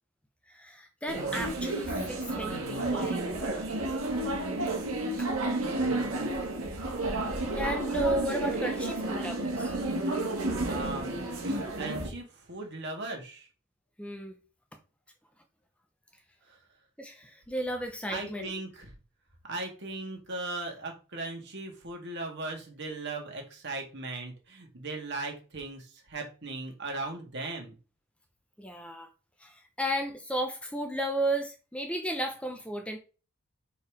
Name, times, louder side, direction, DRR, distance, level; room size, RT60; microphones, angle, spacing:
voice 1, 0.5-3.4 5.2-5.3 7.6-9.7 14.0-14.4 17.0-18.5 28.6-29.1 29.4-33.0, right 1 dB, 5° left, 0.7 m, -34 dB
sound 1, 1.1-12.1, right 2 dB, 75° right, 2.1 m, -31 dB
voice 2, 10.6-13.5 16.5-16.6 18.1-18.9 19.4-27.7, right 2 dB, 55° right, 2.2 m, -38 dB
5.5 x 4.6 x 5.0 m
head